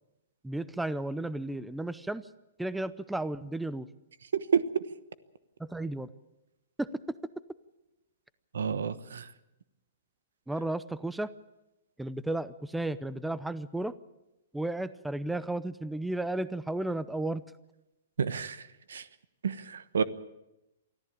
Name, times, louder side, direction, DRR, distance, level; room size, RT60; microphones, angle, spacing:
voice 1, 0.4-2.2 2.6-3.9 5.6-6.1 6.8-6.9 10.5-11.3 12.0-13.9 14.5-17.4, right 2 dB, 5° right, 16 dB, 0.6 m, -33 dB
voice 2, 4.3-4.8 8.5-9.2 18.2-18.6 18.9-19.0 19.4-20.0, right 7 dB, 85° right, 15 dB, 1.1 m, -29 dB
24.0 x 14.5 x 8.7 m, 0.94 s
hypercardioid pair, 140°, 0 cm